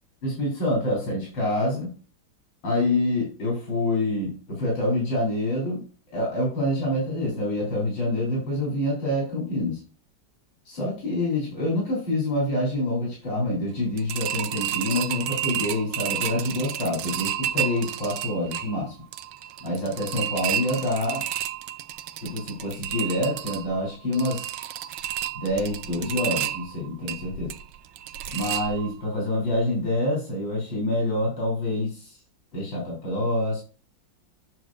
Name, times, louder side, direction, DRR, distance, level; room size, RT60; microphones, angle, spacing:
voice 1, 0.2-1.9 2.6-5.8 6.1-9.8 10.7-19.0 19.6-21.2 22.2-24.5 25.3-27.5 28.3-32.2 32.5-33.6, left 1 dB, 80° left, -3 dB, 4.2 m, -26 dB
sound 1, 14.0-29.1 29.5-29.6 30.0-30.1, right 11 dB, 85° right, 1.3 m, -31 dB
9.1 x 6.8 x 2.5 m, 0.36 s
omnidirectional pair, 2.0 m